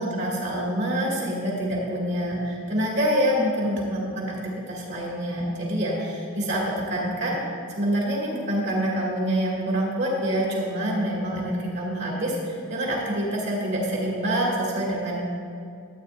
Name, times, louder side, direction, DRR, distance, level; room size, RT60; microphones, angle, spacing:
voice 1, 0.0-4.4 4.7-7.4 7.8-15.2, right 1 dB, 50° right, -4 dB, 2.3 m, -26 dB
13.5 x 8.8 x 2.6 m, 2.4 s
head